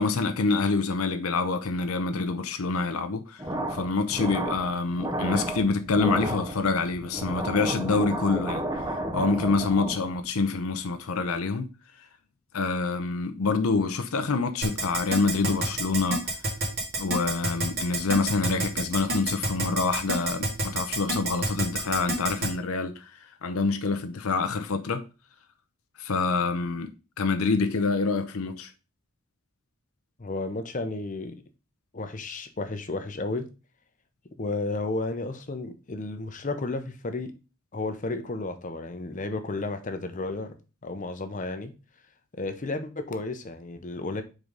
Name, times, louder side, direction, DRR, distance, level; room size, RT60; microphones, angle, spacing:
voice 1, 0.0-3.4 3.7-8.6 9.1-11.7 12.5-16.3 17.0-23.1 23.4-25.0 26.0-26.9 27.2-28.7, left 4 dB, 80° left, 0.6 m, -26 dB
sound 1, 3.4-10.3, right 1 dB, 15° right, 0.6 m, -32 dB
Keyboard (musical), 14.6-22.5, right 2 dB, 50° right, 2.0 m, -27 dB
voice 2, 30.2-31.4 31.9-33.4 34.4-37.3 37.7-40.5 40.8-41.7 42.3-44.2, left 2 dB, 35° left, 0.7 m, -32 dB
4.8 x 3.8 x 5.2 m
head